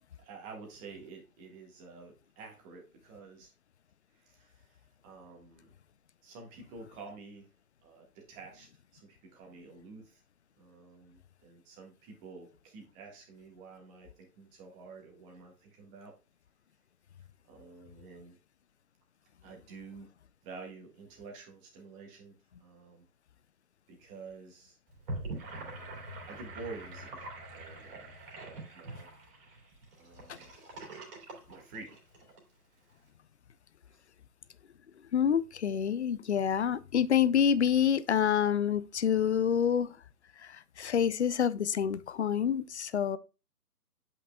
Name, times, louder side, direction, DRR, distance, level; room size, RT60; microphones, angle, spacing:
voice 1, 0.2-3.5 4.1-5.7 6.2-7.5 7.8-10.2 10.6-16.2 17.4-18.4 19.4-20.1 20.4-23.1 23.9-24.8 25.5-28.2 28.4-29.1 30.0-30.5 31.5-32.0 32.9-33.0 33.8-34.0, right 4 dB, 15° right, 1.4 m, -50 dB
Gurgling / Sink (filling or washing), 24.9-32.4, right 2 dB, 35° right, 2.4 m, -44 dB
voice 2, 35.1-40.0 40.4-43.2, left 8 dB, 50° left, 0.5 m, -27 dB
8.0 x 5.7 x 2.2 m
figure-of-eight pair, 145°, 47 cm